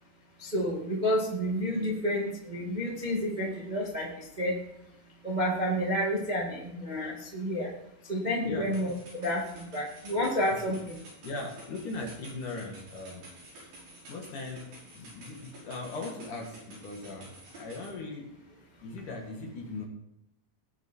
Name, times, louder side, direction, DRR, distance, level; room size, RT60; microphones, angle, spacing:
voice 1, 0.4-4.5 5.2-7.7 8.1-8.9 9.2-10.9, equal, 20° right, -3 dB, 1.3 m, -30 dB
sound 1, 8.6-17.9, right 1 dB, 65° right, 7.6 m, -51 dB
voice 2, 11.2-13.3 13.5-13.7 14.1-18.3 18.8-19.9, left 3 dB, 55° left, 1 dB, 2.9 m, -39 dB
19.0 x 7.4 x 4.5 m, 0.80 s
omnidirectional pair, 5.0 m